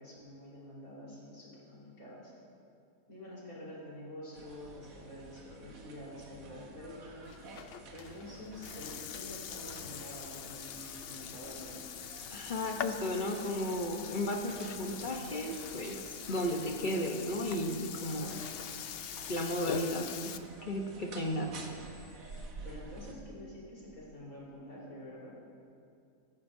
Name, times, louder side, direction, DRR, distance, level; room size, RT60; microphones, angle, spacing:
voice 1, 0.0-2.3 3.1-7.3 7.9-11.8 22.6-25.4, left 1 dB, 65° left, -7 dB, 4.4 m, -47 dB
sound 1, 4.3-23.1, right 2 dB, 65° right, 1.5 m, -51 dB
Burping eructation, 7.2-20.4, left 8 dB, 80° left, 0.5 m, -43 dB
voice 2, 12.3-18.4 19.3-21.7, left 1 dB, 40° left, 2 dB, 0.8 m, -34 dB
17.0 x 15.0 x 2.7 m, 2.4 s
omnidirectional pair, 1.6 m